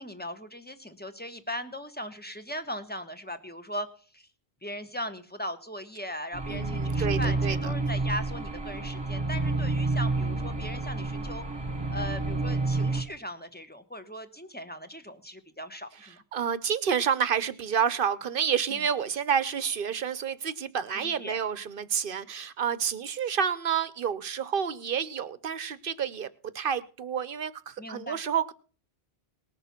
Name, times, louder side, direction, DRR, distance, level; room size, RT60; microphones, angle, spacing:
voice 1, 0.0-3.9 4.1-4.3 4.6-11.4 11.9-16.2 18.7-18.8 20.9-21.4 27.8-28.2, equal, 10° left, 8 dB, 1.1 m, -38 dB
sound 1, 6.3-13.0, right 2 dB, 25° right, 1.6 m, -29 dB
voice 2, 6.5-7.7 16.3-26.3 26.5-28.5, right 7 dB, 60° right, 16 dB, 0.9 m, -29 dB
19.5 x 6.7 x 5.8 m, 0.40 s
omnidirectional pair, 1.1 m